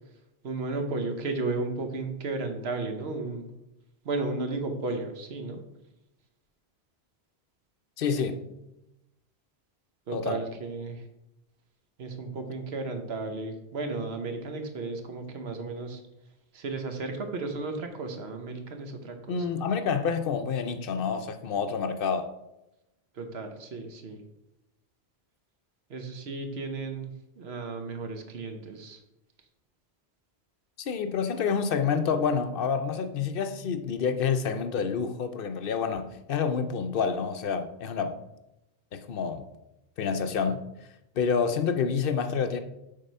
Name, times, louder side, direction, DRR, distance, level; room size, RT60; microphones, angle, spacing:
voice 1, 0.4-3.5 4.0-5.6 10.1-11.0 12.0-16.0 16.5-19.5 23.1-24.2 25.9-29.0, right 3 dB, 75° right, 1.2 m, -34 dB
voice 2, 8.0-8.4 10.1-10.4 19.3-22.3 30.8-38.2 38.9-39.4 40.0-40.6 41.2-42.6, left 6 dB, 65° left, 0.8 m, -28 dB
7.6 x 3.6 x 5.4 m
omnidirectional pair, 1.1 m